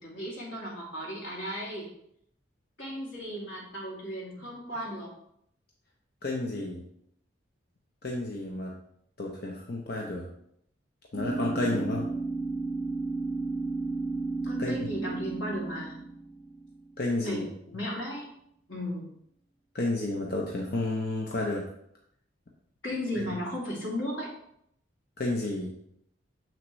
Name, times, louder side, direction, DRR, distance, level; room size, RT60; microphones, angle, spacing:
voice 1, 0.0-1.9 2.8-5.1 11.5-11.8 14.4-16.0 17.2-18.3 18.7-19.1 22.8-24.3, equal, 85° left, -4 dB, 2.7 m, -35 dB
voice 2, 6.2-6.8 8.0-8.7 9.2-10.3 11.1-12.1 14.6-14.8 17.0-17.5 19.7-21.7 25.2-25.7, left 2 dB, 50° left, -1 dB, 0.9 m, -31 dB
sound 1, 11.1-16.9, right 3 dB, 20° right, 1.8 m, -33 dB
7.3 x 6.1 x 3.2 m, 0.72 s
head